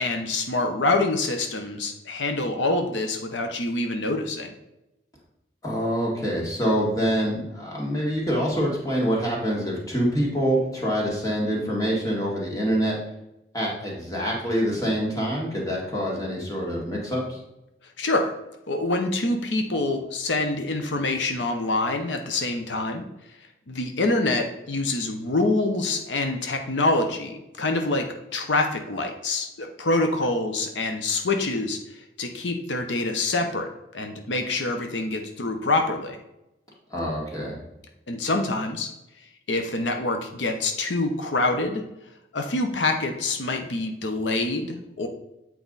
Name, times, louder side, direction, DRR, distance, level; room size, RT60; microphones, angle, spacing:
voice 1, 0.0-4.5 18.0-18.3 18.7-23.0 23.7-28.1 28.3-36.2 38.1-38.9 39.5-41.8 42.3-45.1, left 2 dB, 90° left, 5 dB, 0.8 m, -26 dB
voice 2, 5.6-13.0 13.5-17.4 36.9-37.6, equal, 20° left, -3 dB, 1.9 m, -25 dB
8.3 x 4.7 x 4.0 m, 0.91 s
head